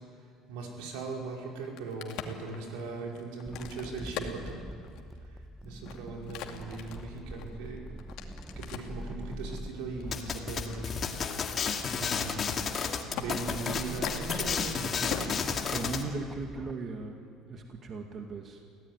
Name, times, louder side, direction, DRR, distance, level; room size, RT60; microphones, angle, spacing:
voice 1, 0.5-4.6 5.2-7.9 8.6-11.0 11.9-12.5 13.1-15.6, right 3 dB, 90° right, 0 dB, 5.1 m, -39 dB
Crack, 1.5-5.2 5.7-9.0 9.6-10.9 11.3-11.4 11.7-12.0 12.3-12.8 13.1-13.3 13.9-16.2, left 9 dB, 75° left, 2.4 m, -42 dB
sound 1, 3.5-16.7, equal, 5° right, 1.0 m, -44 dB
sound 2, 10.1-16.0, left 6 dB, 35° left, 2.2 m, -32 dB
voice 2, 15.7-17.2 17.4-18.6, right 3 dB, 40° right, 3 dB, 2.2 m, -37 dB
24.5 x 16.5 x 9.8 m, 2.2 s
cardioid pair, 120°, 0 cm